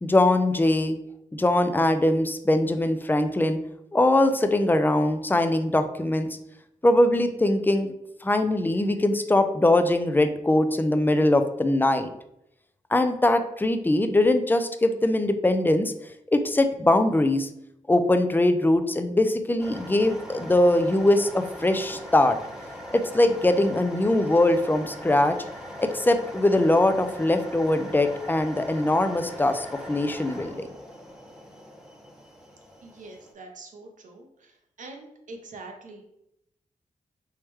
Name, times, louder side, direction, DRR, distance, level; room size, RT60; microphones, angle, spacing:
voice 1, 0.0-1.0 1.3-3.6 3.9-6.3 6.8-7.9 8.2-12.1 12.9-15.9 16.3-17.5 17.9-22.4 22.9-25.4 25.8-30.7, left 1 dB, 15° left, 8 dB, 0.4 m, -22 dB
sound 1, 19.6-33.3, equal, 5° right, 0.8 m, -41 dB
voice 2, 32.8-34.3 34.8-36.0, right 2 dB, 70° right, 3 dB, 0.7 m, -43 dB
3.5 x 3.1 x 3.0 m, 0.80 s
cardioid pair, 65°, 14 cm